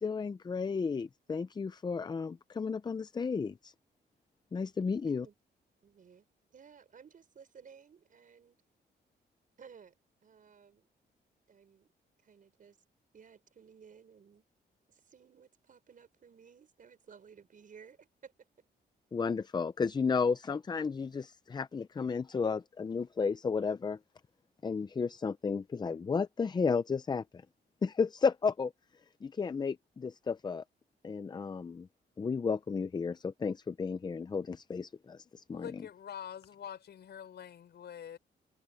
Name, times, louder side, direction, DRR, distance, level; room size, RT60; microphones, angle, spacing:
voice 1, 0.0-3.7 4.5-5.3 19.1-24.0 24.6-27.4 27.8-28.7 29.2-30.6 31.0-31.9 32.2-35.8, left 5 dB, 25° left, 0.5 m, -33 dB
voice 2, 5.8-8.6 9.6-9.9 10.2-10.9 11.5-11.9 12.2-12.8 13.1-14.4 14.9-18.5, right 6 dB, 50° right, 5.2 m, -57 dB
voice 3, 35.5-38.2, left 9 dB, 70° left, 5.3 m, -45 dB
cardioid pair, 125°, 18 cm